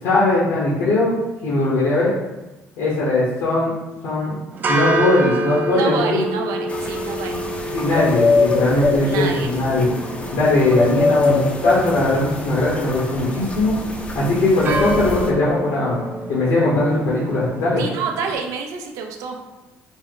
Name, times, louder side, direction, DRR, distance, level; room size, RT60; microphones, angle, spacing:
voice 1, 0.0-1.2 1.4-2.1 2.8-3.7 4.0-4.4 4.7-6.2 7.7-9.9 10.3-13.7 14.1-16.0 16.3-17.8, left 2 dB, 90° left, -7 dB, 1.1 m, -19 dB
sound 1, 4.5-18.3, right 1 dB, 35° right, 0.4 m, -28 dB
voice 2, 5.7-7.4 9.0-9.5 17.8-19.4, right 5 dB, 85° right, 3 dB, 0.6 m, -28 dB
sound 2, 6.7-15.3, left 3 dB, 20° left, 0.5 m, -24 dB
4.1 x 2.1 x 3.9 m, 1.0 s
cardioid pair, 140°, 5 cm